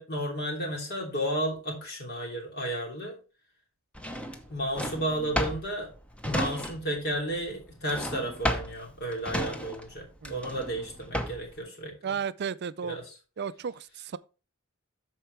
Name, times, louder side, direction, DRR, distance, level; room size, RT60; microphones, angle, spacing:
voice 1, 0.0-3.1 4.5-5.9 6.2-11.9 12.8-13.1, right 1 dB, 50° left, 3.1 m, -33 dB
Drawer open or close, 4.0-7.1 7.3-11.6, equal, 5° left, 0.8 m, -33 dB
voice 2, 12.0-13.0 13.4-14.2, right 7 dB, 50° right, 0.4 m, -33 dB
13.5 x 4.5 x 3.3 m
head